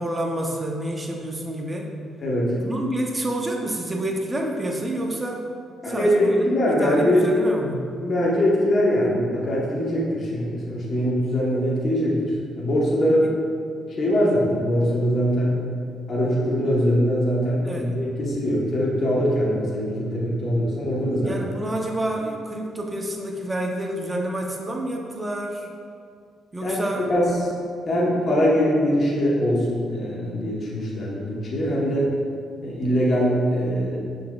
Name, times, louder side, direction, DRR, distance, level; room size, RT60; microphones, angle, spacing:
voice 1, 0.0-1.9 2.6-5.4 5.8-6.4 6.7-7.9 13.2-13.3 17.6-17.9 21.2-25.7 26.5-27.1, right 1 dB, 20° right, 0 dB, 0.5 m, -28 dB
voice 2, 2.2-2.5 5.8-7.2 8.0-13.2 14.0-15.6 16.1-21.3 26.6-26.8 27.1-27.3 27.9-32.1 32.6-34.0, equal, 45° left, -5 dB, 1.0 m, -22 dB
5.8 x 3.9 x 2.3 m, 2.2 s
cardioid pair, 90°, 0 cm